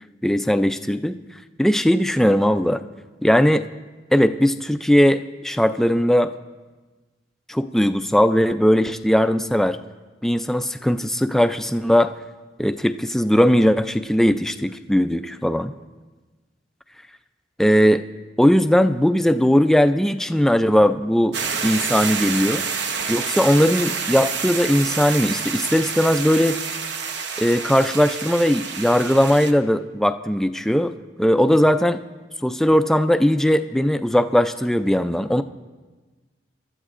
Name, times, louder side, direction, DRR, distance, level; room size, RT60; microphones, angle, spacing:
voice 1, 0.2-1.2 1.6-2.8 3.2-3.6 4.1-6.3 7.5-9.8 10.2-12.1 12.6-15.7 17.6-18.0 18.4-21.4 21.6-22.7 23.1-26.6 27.4-30.9 31.2-32.0 32.4-35.4, equal, ahead, 9 dB, 0.3 m, -19 dB
sound 1, 21.3-29.5, right 5 dB, 85° right, 0.9 m, -28 dB
25.5 x 12.5 x 2.5 m, 1.3 s
head